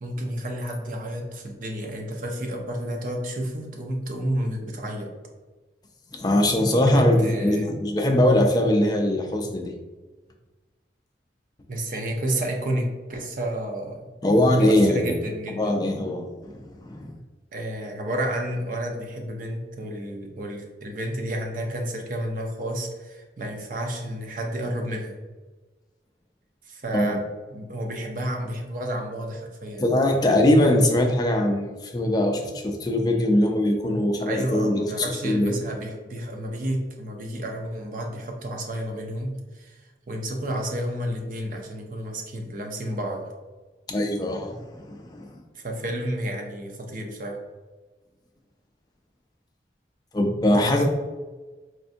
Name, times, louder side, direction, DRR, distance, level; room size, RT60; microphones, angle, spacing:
voice 1, 0.0-5.1 6.8-7.7 11.7-14.1 14.6-15.8 17.5-25.2 26.7-30.3 33.8-39.8 40.1-43.3 45.5-47.4 50.5-50.9, right 1 dB, 50° right, 2 dB, 0.6 m, -31 dB
voice 2, 6.1-7.2 7.4-9.7 14.2-15.2 15.5-17.1 26.9-27.2 29.8-35.6 43.9-45.4 50.1-50.9, left 1 dB, 25° left, 3 dB, 0.4 m, -22 dB
4.4 x 2.6 x 2.5 m, 1.3 s
head